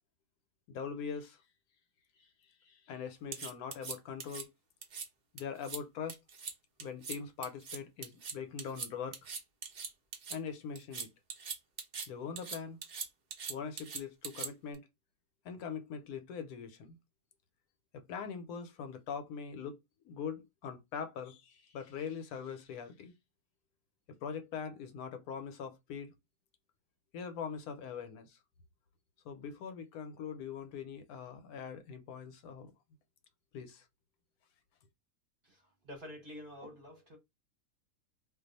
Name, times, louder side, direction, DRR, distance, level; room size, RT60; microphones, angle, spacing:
voice 1, 0.7-1.4 2.6-4.5 5.3-6.2 6.8-9.2 10.3-11.1 12.1-12.8 13.5-14.8 15.4-17.0 17.9-19.8 20.0-23.1 24.1-26.1 27.1-28.4 29.2-32.7 33.5-33.9, left 6 dB, 75° left, 1.0 m, -42 dB
sound 1, 3.3-4.4 4.8-5.1 5.4-5.8 6.1-6.5 6.8-7.2 7.4-10.4 10.7-12.1 12.4-14.7, right 5 dB, 75° right, 0.4 m, -41 dB
voice 2, 35.4-37.2, left 1 dB, 45° right, 0.8 m, -48 dB
2.4 x 2.3 x 3.8 m
omnidirectional pair, 1.6 m